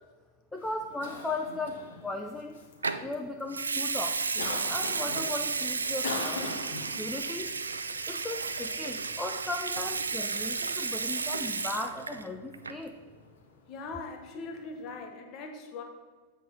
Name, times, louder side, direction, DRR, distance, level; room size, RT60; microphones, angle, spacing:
Cough, 0.5-15.0, left 4 dB, 60° left, 1.2 m, -45 dB
voice 1, 0.5-2.6 3.0-6.5 7.0-7.5 8.1-12.9, left 2 dB, 10° left, 4 dB, 0.5 m, -37 dB
Water tap faucet / Sink (filling or washing) / Liquid, 2.8-3.1 3.5-12.3 12.5-12.9, right 4 dB, 75° right, 0.4 m, -33 dB
voice 2, 13.7-15.8, left 3 dB, 40° left, 4 dB, 1.3 m, -40 dB
7.5 x 4.2 x 6.8 m, 1.4 s
figure-of-eight pair, 90°, 0 cm